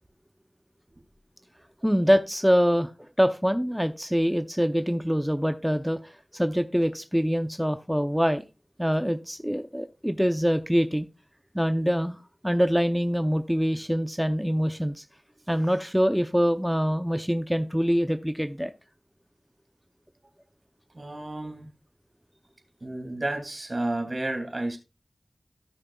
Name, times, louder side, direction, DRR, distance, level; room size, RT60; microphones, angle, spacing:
voice 1, 1.8-2.9 3.2-8.4 8.8-11.1 11.5-15.0 15.5-18.7, equal, 5° right, 0.7 m, -24 dB
voice 2, 20.9-21.7 22.8-24.8, right 2 dB, 50° right, 2.6 m, -31 dB
15.5 x 6.5 x 2.3 m
wide cardioid pair, 50°, 0 cm